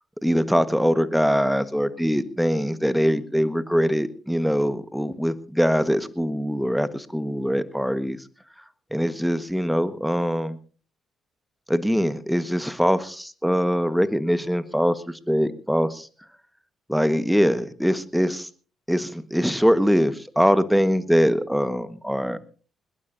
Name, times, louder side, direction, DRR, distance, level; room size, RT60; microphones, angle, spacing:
voice 1, 0.2-8.2 8.9-10.6 11.7-16.1 16.9-18.5 18.9-22.4, equal, ahead, 13 dB, 1.5 m, -22 dB
21.0 x 20.5 x 2.7 m, 0.38 s
hypercardioid pair, 45°, 0 cm